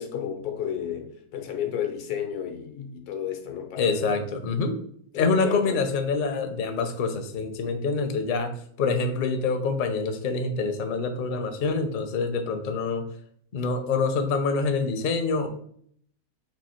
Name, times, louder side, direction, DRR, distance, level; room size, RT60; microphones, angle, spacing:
voice 1, 0.0-4.2 5.1-5.8, left 9 dB, 90° left, 1.3 m, -32 dB
voice 2, 3.8-4.8 5.1-8.5 8.8-13.1 13.5-15.5, left 4 dB, 55° left, 0.5 m, -26 dB
4.6 x 2.7 x 4.3 m
omnidirectional pair, 1.6 m